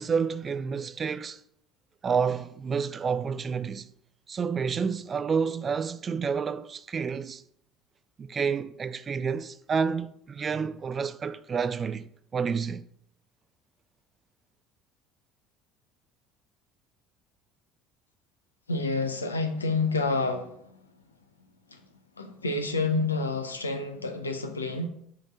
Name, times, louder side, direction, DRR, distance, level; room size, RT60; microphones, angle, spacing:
voice 1, 0.0-1.4 2.0-3.9 4.3-7.4 8.2-12.8, right 6 dB, 35° right, 0.4 m, -29 dB
voice 2, 18.7-20.9 21.7-21.8 22.2-24.9, left 3 dB, 90° left, 0.5 m, -29 dB
6.2 x 3.1 x 5.0 m
figure-of-eight pair, 65°, 0 cm